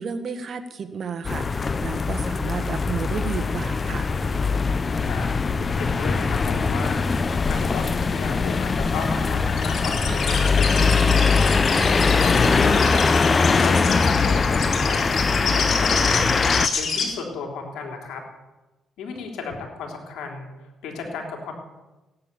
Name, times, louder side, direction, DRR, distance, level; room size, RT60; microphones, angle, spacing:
voice 1, 0.0-4.1, right 6 dB, 50° right, 7 dB, 1.6 m, -32 dB
sound 1, 1.2-16.7, left 4 dB, 35° left, 0.7 m, -21 dB
voice 2, 4.3-5.3 5.8-7.0 7.5-11.1 11.7-13.1 13.6-18.2 19.0-20.5 20.8-21.5, left 4 dB, 85° left, 2 dB, 3.6 m, -34 dB
sound 2, 9.6-17.0, left 5 dB, 55° left, 3.9 m, -28 dB
sound 3, 10.1-15.3, right 3 dB, 35° right, 2.8 m, -40 dB
16.5 x 10.5 x 7.1 m, 1.1 s
cardioid pair, 90°, 0 cm